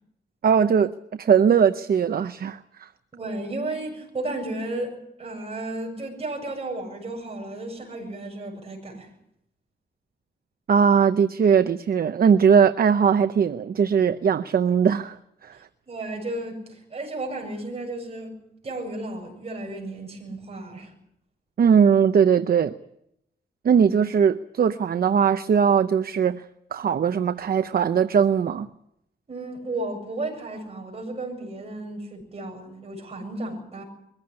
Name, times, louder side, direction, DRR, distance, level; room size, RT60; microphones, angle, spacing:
voice 1, 0.4-0.9 1.2-2.9 10.7-15.2 15.4-15.6 21.6-22.7 23.6-26.4 26.7-28.7, right 7 dB, 55° right, 0.8 m, -20 dB
voice 2, 3.1-9.1 15.9-20.9 29.3-33.8, right 2 dB, 35° right, 7.2 m, -33 dB
23.0 x 15.5 x 9.9 m
wide cardioid pair, 155°, 18 cm